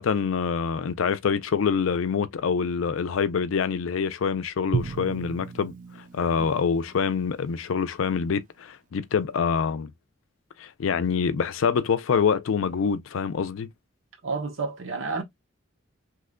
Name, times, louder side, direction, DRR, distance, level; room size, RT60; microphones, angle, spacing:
voice 1, 0.0-9.9 10.6-13.7, left 6 dB, 85° left, 0.4 m, -26 dB
Drum, 4.7-7.7, right 5 dB, 40° right, 0.4 m, -35 dB
voice 2, 14.2-15.2, right 4 dB, 85° right, 0.8 m, -30 dB
3.1 x 2.1 x 3.6 m
head